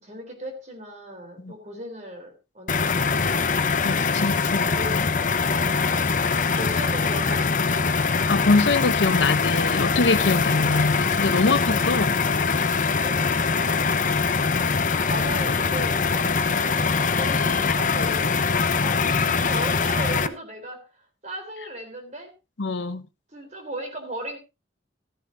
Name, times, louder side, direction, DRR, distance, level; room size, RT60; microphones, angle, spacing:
voice 1, 0.0-3.5 4.5-5.5 6.1-7.5 13.0-14.0 15.0-22.3 23.3-24.4, right 1 dB, 40° right, 3.8 m, -37 dB
sound 1, 2.7-20.3, left 5 dB, 45° left, 0.8 m, -23 dB
voice 2, 3.8-4.6 8.3-12.2 22.6-23.1, left 3 dB, 75° left, 0.9 m, -23 dB
14.5 x 13.5 x 2.7 m
head